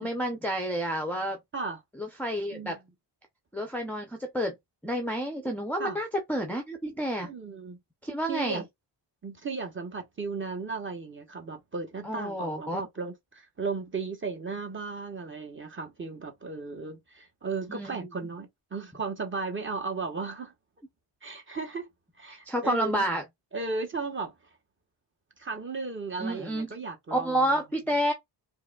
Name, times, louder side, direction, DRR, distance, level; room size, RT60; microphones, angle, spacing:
voice 1, 0.0-1.4 2.0-2.8 3.5-4.6 4.8-7.3 8.0-8.6 12.0-12.8 17.7-18.1 22.5-23.2 26.2-26.7 27.1-28.1, equal, 5° left, 0.5 m, -29 dB
voice 2, 7.2-7.8 8.3-8.6 9.2-20.5 21.2-21.9 22.2-23.1 23.5-24.3 25.4-27.5, right 4 dB, 25° right, 1.0 m, -35 dB
4.6 x 2.6 x 2.2 m
wide cardioid pair, 150°, 46 cm